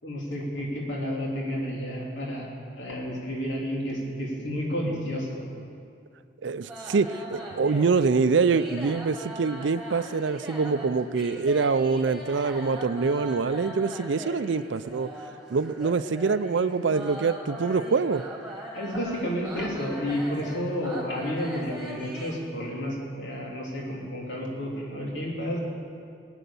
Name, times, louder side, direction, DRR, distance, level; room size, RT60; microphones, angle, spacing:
voice 1, 0.0-5.5 18.7-25.6, equal, 75° left, -3 dB, 3.3 m, -31 dB
voice 2, 6.4-15.1 15.5-18.2, right 4 dB, 75° right, 14 dB, 0.5 m, -25 dB
sound 1, 6.6-22.3, right 1 dB, 5° right, 2.1 m, -40 dB
20.0 x 9.1 x 7.0 m, 2.4 s
head